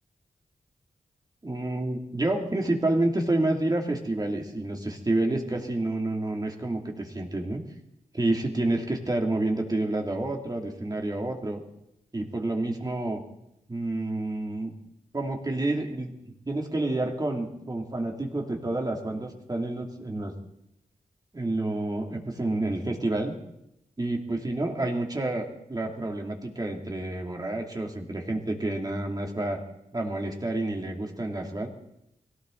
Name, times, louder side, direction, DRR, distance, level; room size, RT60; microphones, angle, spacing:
voice 1, 1.4-7.6 8.1-11.6 12.1-13.2 13.7-14.7 15.1-16.1 16.5-20.4 21.3-23.3 24.0-29.6 29.9-31.7, right 2 dB, 30° right, 1 dB, 2.6 m, -29 dB
21.0 x 17.5 x 3.9 m, 0.82 s
wide cardioid pair, 80°, 14 cm